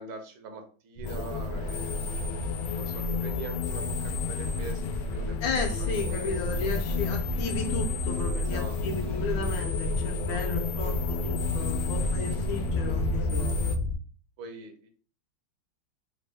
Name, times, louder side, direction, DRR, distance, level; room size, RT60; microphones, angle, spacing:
voice 1, 0.0-2.1 2.8-5.4 5.8-6.4 8.4-8.8 10.2-10.4 11.5-11.9 13.1-13.6 14.4-14.9, right 3 dB, 75° right, 5 dB, 1.5 m, -43 dB
sound 1, 1.0-13.8, left 7 dB, 90° left, 1.5 m, -34 dB
sound 2, 1.0-13.9, left 1 dB, 90° right, 0.7 m, -31 dB
sound 3, 4.8-12.2, left 3 dB, 45° left, 0.8 m, -42 dB
voice 2, 5.4-13.5, left 4 dB, 70° left, 3 dB, 1.3 m, -34 dB
4.1 x 2.1 x 3.2 m, 0.39 s
omnidirectional pair, 2.3 m